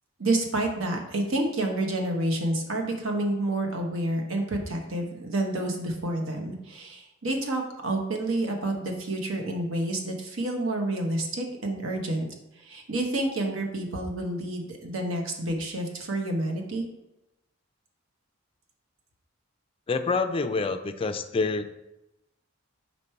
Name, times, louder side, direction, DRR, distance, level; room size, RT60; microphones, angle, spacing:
voice 1, 0.2-12.3 12.6-16.9, right 1 dB, 75° right, 2 dB, 1.1 m, -29 dB
voice 2, 19.9-21.7, left 4 dB, 25° left, 8 dB, 0.4 m, -27 dB
5.2 x 4.3 x 4.4 m, 0.92 s
head